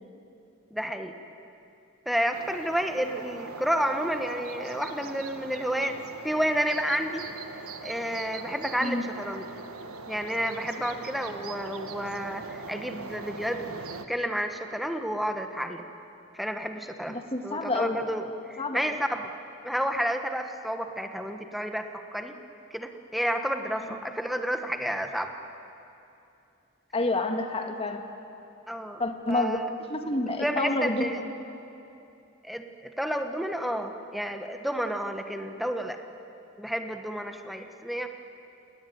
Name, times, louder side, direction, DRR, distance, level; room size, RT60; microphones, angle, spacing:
voice 1, 0.7-1.1 2.0-6.0 6.2-7.2 7.8-9.4 10.1-13.8 14.1-15.8 16.3-19.3 19.6-22.3 22.7-25.3 28.7-29.0 29.3-29.7 30.4-31.2 32.4-36.0 36.6-38.1, equal, ahead, 6 dB, 1.3 m, -30 dB
sound 1, 2.3-14.1, right 4 dB, 90° right, 1.4 m, -41 dB
voice 2, 17.1-18.0 18.6-18.8 26.9-28.0 29.0-29.6 29.9-31.0, left 2 dB, 25° left, 4 dB, 2.0 m, -28 dB
29.5 x 19.0 x 9.4 m, 2.7 s
head